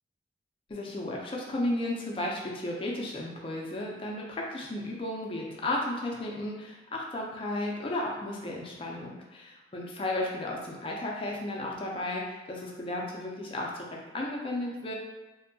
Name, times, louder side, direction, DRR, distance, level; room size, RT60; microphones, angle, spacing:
voice 1, 0.7-14.9, left 1 dB, 30° left, -2 dB, 0.4 m, -34 dB
2.6 x 2.2 x 2.6 m, 1.2 s
head